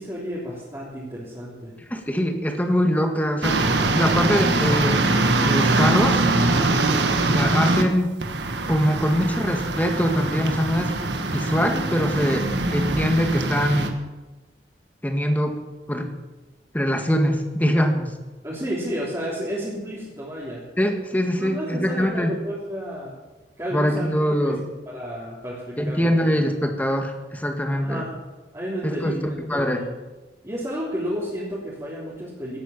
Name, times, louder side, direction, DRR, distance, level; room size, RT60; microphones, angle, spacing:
voice 1, 0.0-1.7 18.4-20.6 21.4-23.1 23.6-24.1 24.5-24.6 24.9-26.4 27.7-28.1 28.5-29.9 30.4-32.6, equal, 20° right, -9 dB, 3.5 m, -31 dB
voice 2, 1.9-5.0 5.4-6.2 7.3-8.1 8.7-10.9 11.3-14.0 15.0-15.6 15.9-16.1 16.7-18.1 20.8-22.3 23.7-24.6 25.8-28.0 28.8-29.1 29.5-29.8, equal, 10° left, 4 dB, 1.7 m, -23 dB
sound 1, 3.4-7.8 8.2-13.9, right 2 dB, 80° right, 1.6 m, -22 dB
17.5 x 9.1 x 7.4 m, 1.2 s
head